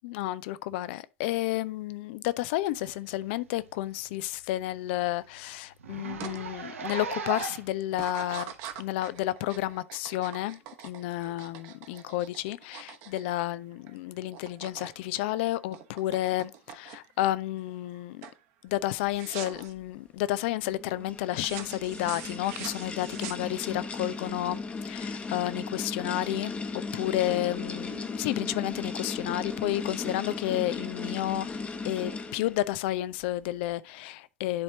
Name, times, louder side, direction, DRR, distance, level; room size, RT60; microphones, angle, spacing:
voice 1, 0.0-18.3 18.6-26.5 26.9-31.5 31.9-34.6, left 15 dB, 50° left, 0.5 m, -31 dB
Zipper (clothing), 3.2-3.3 3.7-3.8 4.2-4.3 4.6-4.7 5.0-5.1 5.8-7.8 8.5-8.6 9.6-9.7, right 5 dB, 70° right, 1.1 m, -37 dB
sound 1, 6.2-6.4 6.8-7.2 7.9-14.0 14.2-14.9 15.2-17.2 17.7-18.0 18.2-18.4 19.1-19.7 21.3-23.8, right 10 dB, 45° right, 1.1 m, -43 dB
sound 2, 20.5-32.7, left 4 dB, 15° left, 1.0 m, -36 dB
10.5 x 4.3 x 2.8 m
figure-of-eight pair, 80°, 7 cm